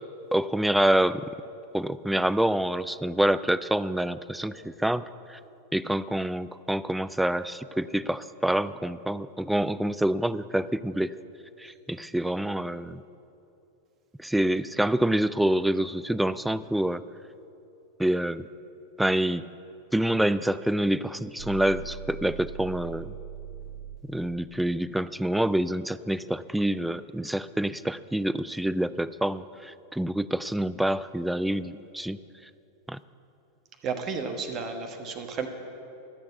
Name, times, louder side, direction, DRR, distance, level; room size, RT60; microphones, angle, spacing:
voice 1, 0.3-1.3 1.7-5.4 5.7-11.1 11.6-13.0 14.2-17.0 18.0-18.5 19.0-19.5 19.9-23.1 24.1-32.2 32.9-33.0, right 1 dB, 5° right, 16 dB, 0.3 m, -27 dB
sound 1, 21.4-24.2, right 6 dB, 75° right, 0.6 m, -40 dB
voice 2, 33.8-35.5, right 5 dB, 30° right, 5 dB, 1.2 m, -32 dB
13.0 x 6.6 x 8.1 m, 2.7 s
figure-of-eight pair, 90°, 0 cm